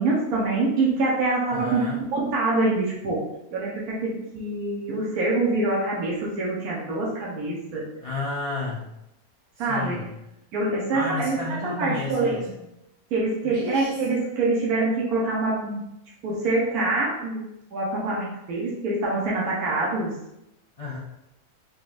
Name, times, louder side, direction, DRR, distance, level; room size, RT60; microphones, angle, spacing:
voice 1, 0.0-1.8 2.1-3.2 3.5-7.9 9.6-10.0 10.5-12.6 13.1-15.8 16.2-17.4 17.7-20.1, right 2 dB, 90° right, -4 dB, 1.3 m, -25 dB
voice 2, 1.5-2.0 8.0-8.8 9.6-10.1 10.9-12.5 13.4-13.9 20.8-21.0, left 2 dB, 70° left, -5 dB, 0.3 m, -32 dB
3.8 x 3.4 x 2.5 m, 0.86 s
omnidirectional pair, 1.5 m